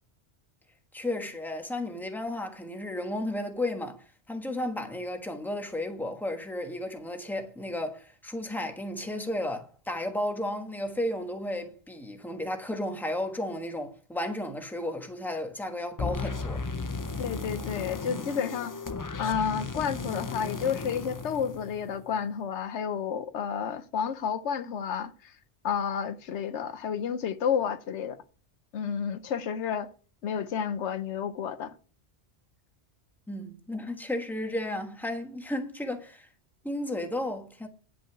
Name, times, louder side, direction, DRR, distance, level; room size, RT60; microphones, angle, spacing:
voice 1, 0.9-4.0 4.3-16.6 33.3-36.3 36.6-37.7, left 1 dB, ahead, 1.2 m, -33 dB
sound 1, 16.0-22.1, left 4 dB, 30° left, 0.4 m, -35 dB
voice 2, 17.2-18.8 19.2-25.3 25.6-28.2 28.7-29.9 30.2-31.7, left 7 dB, 80° left, 1.0 m, -31 dB
10.0 x 6.1 x 5.9 m
omnidirectional pair, 1.2 m